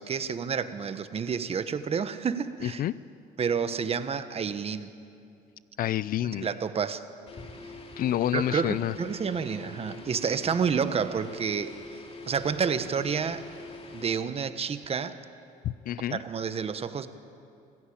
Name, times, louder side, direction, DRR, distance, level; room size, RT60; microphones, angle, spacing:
voice 1, 0.0-2.8 3.4-4.9 6.3-7.0 8.3-12.0 12.3-13.4 13.9-15.1 16.1-17.1, right 6 dB, 35° right, 10 dB, 1.2 m, -29 dB
voice 2, 2.6-3.0 5.8-6.5 8.0-8.9 15.6-16.2, left 12 dB, 60° left, 18 dB, 0.5 m, -28 dB
sound 1, 7.3-14.3, left 3 dB, 35° left, 2.6 m, -44 dB
25.5 x 15.5 x 8.6 m, 2.5 s
cardioid pair, 110°, 17 cm